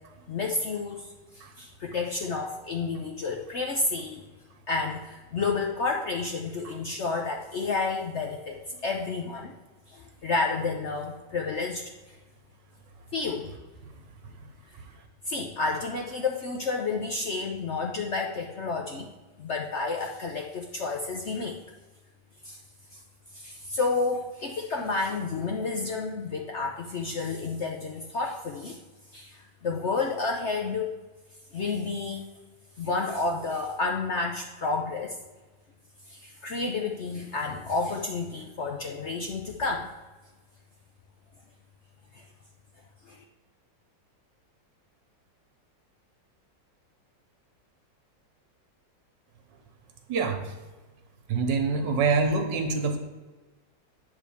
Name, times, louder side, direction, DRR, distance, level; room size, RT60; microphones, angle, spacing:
voice 1, 0.3-1.0 1.3-4.3 4.7-9.5 9.9-11.8 13.1-13.5 15.3-19.1 19.4-21.6 22.4-22.6 23.3-28.8 29.1-30.9 31.5-32.3 32.8-35.2 36.1-39.9 42.1-42.2 43.1-43.2, left 3 dB, 55° left, 1 dB, 0.8 m, -30 dB
voice 2, 50.1-50.5 51.3-53.0, right 4 dB, 80° right, 5 dB, 1.7 m, -26 dB
8.8 x 3.6 x 6.9 m, 1.2 s
omnidirectional pair, 1.9 m